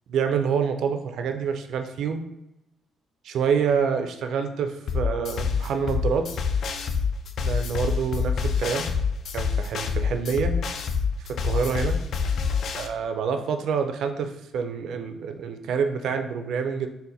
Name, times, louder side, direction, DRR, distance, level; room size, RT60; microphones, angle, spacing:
voice 1, 0.1-2.2 3.2-6.2 7.4-8.9 9.3-10.5 11.4-12.0 12.8-16.9, right 6 dB, 75° right, 6 dB, 0.4 m, -27 dB
sound 1, 4.9-12.9, left 5 dB, 65° left, 0.3 m, -26 dB
4.1 x 2.1 x 3.9 m, 0.88 s
cardioid pair, 90°, 0 cm